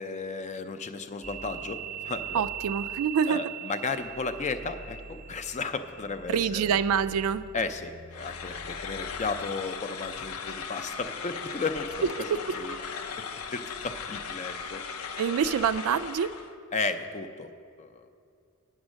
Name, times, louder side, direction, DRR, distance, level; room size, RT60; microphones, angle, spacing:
voice 1, 0.0-2.4 3.3-6.8 7.5-12.1 12.5-12.8 13.2-14.8 16.7-17.5 17.8-18.1, left 4 dB, 30° left, 10 dB, 0.4 m, -34 dB
sound 1, 1.2-9.8, right 8 dB, 30° right, 0.6 m, -41 dB
voice 2, 2.3-3.4 6.3-7.4 12.3-12.4 15.2-16.3, right 7 dB, 70° right, 14 dB, 0.3 m, -26 dB
sound 2, 8.1-16.5, left 6 dB, 75° left, 0.6 m, -38 dB
8.7 x 7.3 x 6.2 m, 2.4 s
head